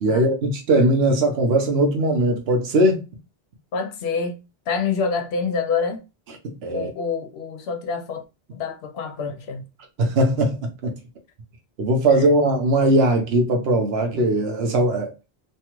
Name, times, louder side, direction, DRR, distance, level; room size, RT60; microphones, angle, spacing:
voice 1, 0.0-3.0 6.6-6.9 10.0-11.0 11.8-15.1, right 1 dB, 75° right, 1.0 m, -19 dB
voice 2, 3.7-4.4 4.7-6.0 6.7-8.2 8.5-9.7, left 5 dB, 80° left, 0.9 m, -26 dB
3.2 x 2.3 x 2.9 m
omnidirectional pair, 1.1 m